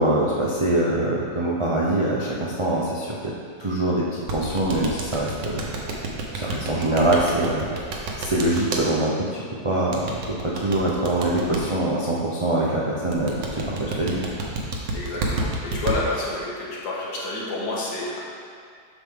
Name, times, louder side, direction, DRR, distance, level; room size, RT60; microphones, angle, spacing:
voice 1, 0.0-3.3 3.6-5.7 5.9-6.0 6.3-7.8 8.2-9.3 9.6-14.2, right 1 dB, 55° right, -5 dB, 0.3 m, -24 dB
sound 1, 4.3-8.8 9.9-11.6 13.1-16.0, right 3 dB, 85° right, 1.6 m, -28 dB
voice 2, 14.9-18.2, left 2 dB, 70° left, -6 dB, 2.0 m, -29 dB
8.1 x 6.0 x 3.6 m, 2.1 s
omnidirectional pair, 1.9 m